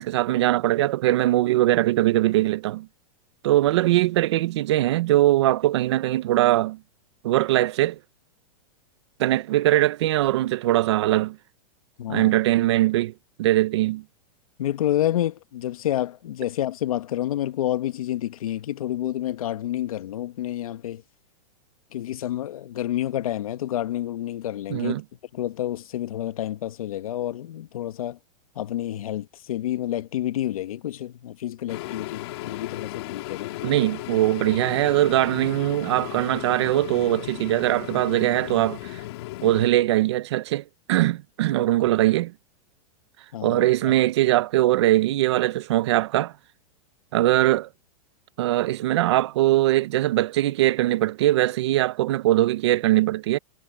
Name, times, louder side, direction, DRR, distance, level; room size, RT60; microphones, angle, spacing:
voice 1, 0.0-2.9 3.4-6.8 7.2-8.0 9.2-11.4 12.1-13.1 13.4-14.0 24.7-25.0 33.6-39.0 39.4-42.3 43.4-46.3 47.1-47.7 48.4-53.4, right 15 dB, 50° right, 0.8 m, -21 dB
voice 2, 12.0-12.4 14.6-21.0 21.9-25.0 25.3-28.2 28.5-33.7 43.3-43.9, left 12 dB, 75° left, 1.4 m, -29 dB
sound 1, 31.7-39.7, left 18 dB, 45° left, 3.4 m, -36 dB
supercardioid pair, 175°, 18 cm